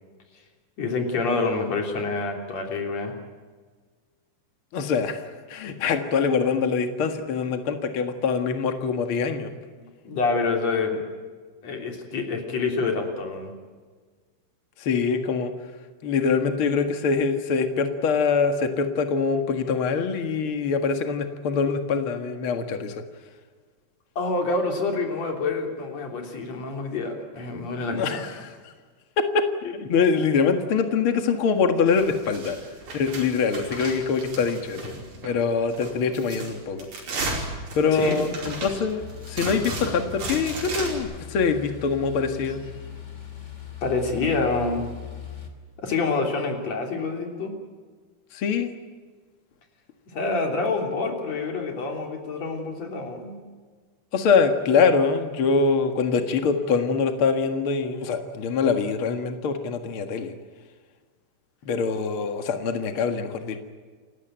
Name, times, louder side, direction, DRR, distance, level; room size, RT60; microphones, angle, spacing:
voice 1, 0.8-3.1 9.8-11.0 11.6-13.5 24.2-28.2 37.9-38.3 43.8-44.8 45.8-47.6 50.1-53.4, left 3 dB, 40° left, 3 dB, 4.1 m, -27 dB
voice 2, 4.7-9.5 14.8-15.5 16.0-23.0 27.9-28.5 29.2-32.6 32.9-34.9 35.2-36.9 37.7-42.6 48.3-48.7 54.1-60.3 61.6-63.6, left 5 dB, 85° left, 6 dB, 1.2 m, -24 dB
sound 1, 31.9-35.4 35.7-41.0, right 2 dB, 45° right, 6.4 m, -35 dB
sound 2, 39.0-45.5, left 9 dB, 20° left, 2.1 m, -40 dB
29.0 x 16.0 x 9.1 m, 1.5 s
omnidirectional pair, 5.3 m